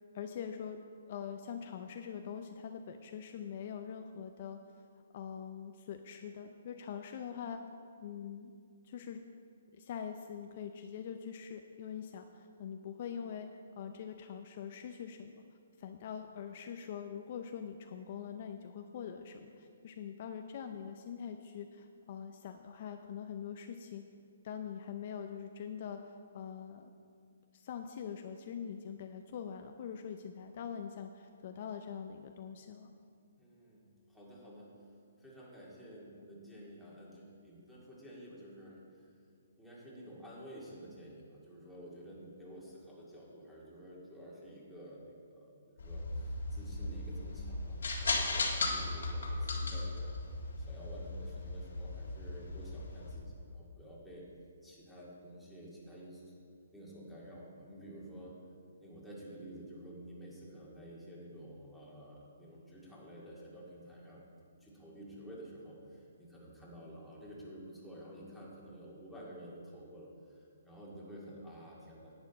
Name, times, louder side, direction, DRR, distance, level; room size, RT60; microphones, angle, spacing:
voice 1, 0.1-0.8 1.1-4.6 5.1-7.6 8.0-8.5 8.8-9.2 9.7-15.3 15.8-24.0 24.4-26.9 27.5-32.9, left 7 dB, 45° left, 6 dB, 0.5 m, -43 dB
voice 2, 33.4-34.7 35.2-39.0 39.6-45.5 45.8-50.1 50.6-54.3 54.6-56.3 56.7-58.3 58.8-64.2 64.5-72.1, equal, ahead, -7 dB, 2.1 m, -51 dB
sound 1, 45.8-53.2, left 2 dB, 75° left, 1.6 m, -37 dB
10.5 x 8.8 x 4.1 m, 2.3 s
hypercardioid pair, 155°, 0 cm